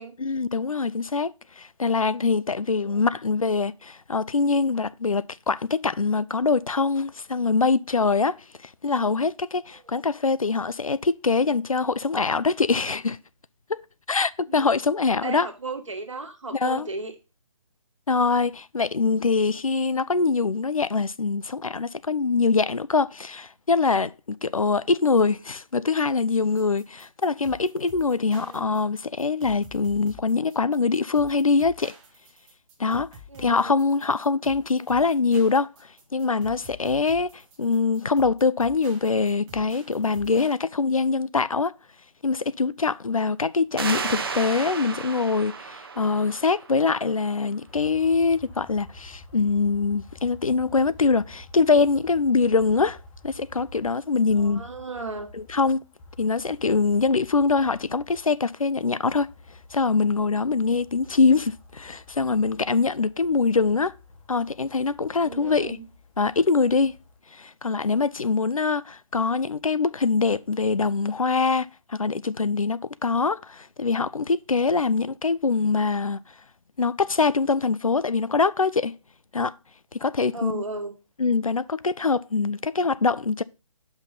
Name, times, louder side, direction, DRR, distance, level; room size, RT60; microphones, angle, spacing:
voice 1, 0.2-8.4 8.8-13.2 13.7-13.8 14.1-15.5 16.5-16.9 18.1-24.1 24.4-31.9 32.8-33.1 33.4-35.7 36.1-41.7 42.2-53.0 53.2-54.6 55.3-55.8 56.2-59.3 59.7-63.9 64.3-65.8 66.2-66.9 67.3-76.2 76.8-78.9 79.3-79.5 79.9-80.6 81.2-83.4, left 4 dB, 80° left, 0.5 m, -23 dB
voice 2, 2.8-3.2 14.6-14.7 15.2-17.1 28.3-28.8 33.3-33.7 43.3-43.4 54.4-55.3 65.2-65.9 80.3-81.0, right 3 dB, 65° right, 1.5 m, -35 dB
sound 1, 26.6-40.6, left 1 dB, 15° right, 0.9 m, -48 dB
sound 2, 43.8-47.1, right 5 dB, 45° right, 0.8 m, -33 dB
sound 3, 47.7-67.2, left 2 dB, 10° left, 0.9 m, -49 dB
5.9 x 5.5 x 4.0 m
figure-of-eight pair, 145°, 17 cm